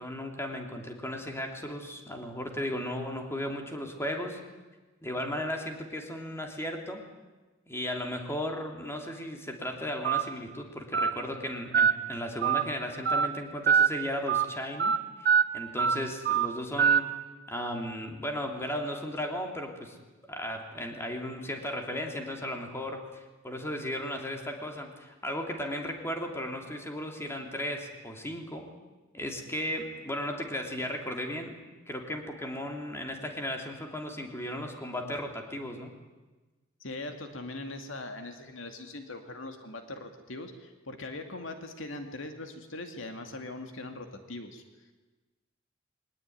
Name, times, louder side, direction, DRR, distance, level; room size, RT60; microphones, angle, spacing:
voice 1, 0.0-4.4 5.0-7.0 7.7-14.9 15.2-17.2 17.5-20.0 20.3-28.7 29.1-31.5 31.9-35.9, left 1 dB, 15° left, 3 dB, 3.1 m, -35 dB
Telephone, 10.0-10.2 10.9-11.1 11.7-11.9 12.4-12.6 13.1-13.3 13.7-13.9 14.3-14.4 14.8-15.0 15.3-15.4 15.8-16.0 16.3-16.5 16.8-17.0, right 7 dB, 55° right, 1.1 m, -23 dB
voice 2, 36.8-44.6, left 2 dB, 70° left, 6 dB, 2.4 m, -41 dB
23.0 x 19.5 x 9.5 m, 1.2 s
head